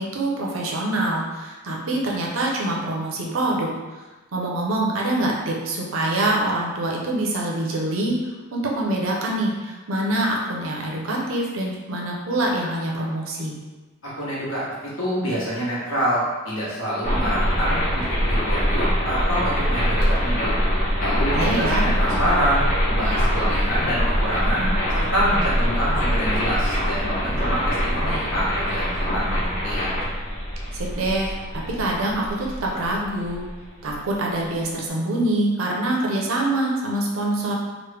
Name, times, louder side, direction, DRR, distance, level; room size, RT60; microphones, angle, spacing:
voice 1, 0.0-3.7 4.3-8.2 8.5-13.6 21.3-21.8 30.7-33.4 33.8-37.5, right 1 dB, 75° right, -1 dB, 0.6 m, -25 dB
voice 2, 14.0-20.6 21.0-29.9, equal, 75° left, -9 dB, 1.1 m, -26 dB
sound 1, 17.0-33.9, equal, 40° left, 1.0 m, -23 dB
3.0 x 2.1 x 3.3 m, 1.2 s
head